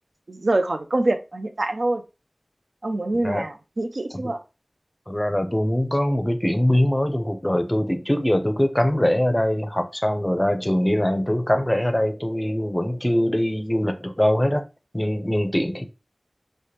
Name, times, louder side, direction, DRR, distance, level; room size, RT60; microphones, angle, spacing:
voice 1, 0.3-2.0 2.8-4.4, right 2 dB, 70° right, 0.5 m, -25 dB
voice 2, 5.1-14.6 14.9-15.9, left 1 dB, 15° left, 0.5 m, -22 dB
4.8 x 2.1 x 2.8 m
wide cardioid pair, 45°, 0 cm